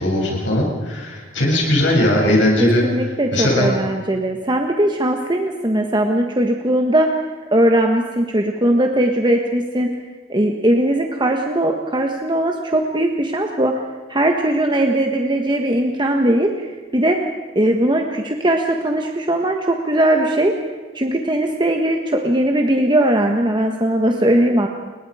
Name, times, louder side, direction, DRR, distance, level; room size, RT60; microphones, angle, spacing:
voice 1, 0.0-2.8 3.3-3.7, left 1 dB, 70° left, -2 dB, 7.4 m, -18 dB
voice 2, 2.6-7.1 7.5-10.0 10.3-13.7 14.1-16.7 16.9-17.2 17.5-20.5 20.9-24.7, right 1 dB, 25° right, 3 dB, 1.4 m, -19 dB
29.5 x 22.5 x 5.0 m, 1.4 s
head